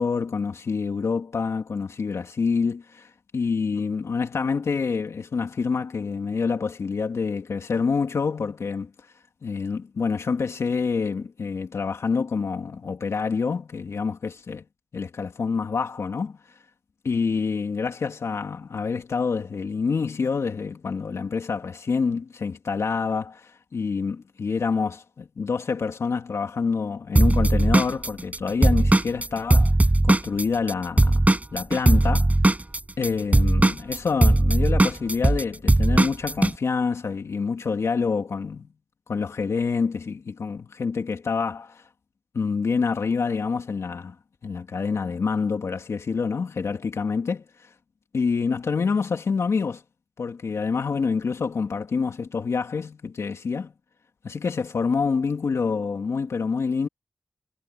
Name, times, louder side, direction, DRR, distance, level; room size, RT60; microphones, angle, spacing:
voice 1, 0.0-3.1 3.3-8.9 9.4-14.6 14.9-16.4 17.0-29.7 30.0-32.3 33.0-38.7 39.1-41.8 42.3-44.1 44.4-47.4 48.1-49.8 50.2-53.7 54.2-56.9, left 5 dB, 85° left, 2.7 m, -27 dB
Drum kit / Drum, 27.2-30.7 31.0-36.5, right 2 dB, 30° right, 5.6 m, -18 dB
cardioid pair, 40°, 5 cm